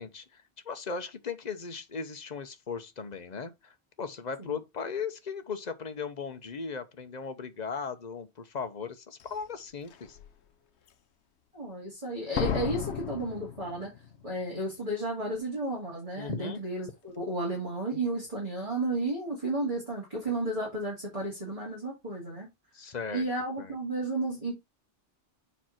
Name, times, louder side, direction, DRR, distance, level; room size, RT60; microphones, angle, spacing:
voice 1, 0.0-10.2 16.2-16.6 22.7-23.2 23.6-23.7, left 5 dB, 40° left, 0.9 m, -37 dB
Slam, 9.2-9.3 9.9-10.3 12.4-14.2 14.5-14.6, left 9 dB, 75° left, 1.0 m, -34 dB
voice 2, 11.5-13.9 14.2-22.5 23.1-24.5, right 2 dB, 30° right, 2.6 m, -33 dB
7.1 x 4.5 x 4.3 m
omnidirectional pair, 1.2 m